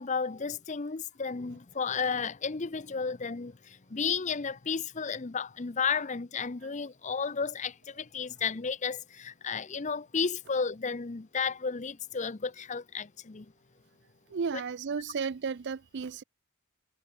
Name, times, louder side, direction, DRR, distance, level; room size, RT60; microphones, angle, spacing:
voice 1, 0.0-13.5 14.5-14.6, left 5 dB, 35° left, 0.6 m, -33 dB
voice 2, 14.3-16.2, right 5 dB, 50° right, 0.4 m, -33 dB
head